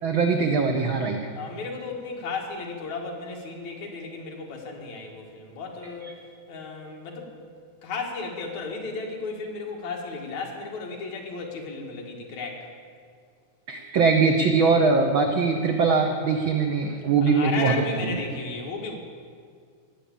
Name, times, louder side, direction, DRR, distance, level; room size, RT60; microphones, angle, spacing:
voice 1, 0.0-1.2 6.0-6.1 13.7-17.7 18.0-18.1, right 4 dB, 90° right, 4 dB, 1.1 m, -22 dB
voice 2, 1.3-6.2 6.5-7.4 7.8-12.7 17.2-19.0, left 4 dB, 65° left, 1 dB, 3.0 m, -34 dB
17.5 x 7.5 x 8.7 m, 2.1 s
omnidirectional pair, 3.6 m